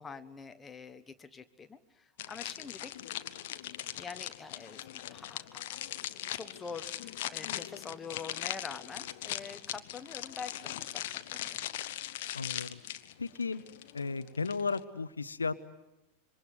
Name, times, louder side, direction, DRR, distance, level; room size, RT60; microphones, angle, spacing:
voice 1, 0.0-3.0 4.0-5.8 6.1-11.6, left 5 dB, 15° left, 9 dB, 1.2 m, -46 dB
sound 1, 2.2-14.8, left 13 dB, 55° left, 1.0 m, -40 dB
voice 2, 12.3-12.8 13.2-13.6 13.9-15.6, left 4 dB, 75° left, 13 dB, 0.9 m, -34 dB
27.0 x 23.5 x 7.9 m, 0.94 s
figure-of-eight pair, 90°, 0 cm